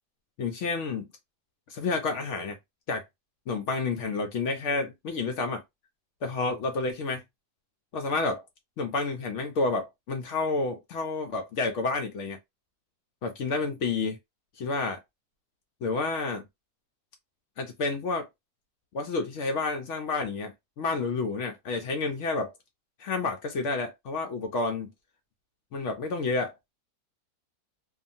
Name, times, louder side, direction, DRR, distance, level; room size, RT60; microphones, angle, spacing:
voice 1, 0.4-1.0 1.7-2.6 2.9-3.0 3.5-5.6 6.2-7.2 7.9-8.4 8.8-12.4 13.2-14.2 14.6-15.0 15.8-16.4 17.6-18.3 18.9-22.5 23.0-24.9 25.7-26.5, left 3 dB, 65° left, 0.7 m, -30 dB
2.7 x 2.4 x 2.6 m
omnidirectional pair, 1.7 m